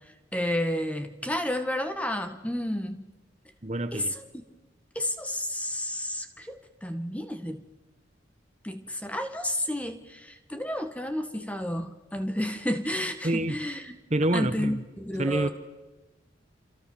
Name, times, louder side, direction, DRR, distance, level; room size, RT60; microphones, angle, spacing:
voice 1, 0.3-3.0 3.9-4.2 4.9-7.6 8.6-14.0 14.3-15.5, left 1 dB, 5° left, 1.6 m, -31 dB
voice 2, 3.6-4.1 13.2-13.6 14.1-14.8 15.2-15.5, right 1 dB, 35° right, 1.1 m, -27 dB
27.5 x 27.0 x 7.2 m
head